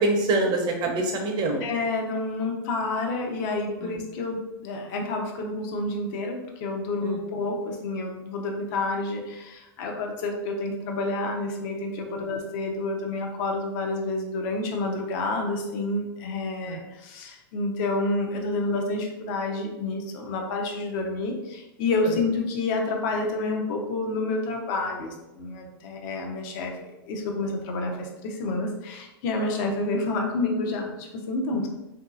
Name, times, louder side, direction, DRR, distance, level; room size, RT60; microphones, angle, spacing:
voice 1, 0.0-1.7 3.8-3.9 7.0-7.2 16.7-16.8, right 2 dB, 35° right, 2 dB, 0.6 m, -25 dB
voice 2, 1.6-26.8 27.1-31.7, left 2 dB, 50° left, 2 dB, 0.6 m, -29 dB
2.9 x 2.7 x 2.4 m, 0.98 s
hypercardioid pair, 115°, 13 cm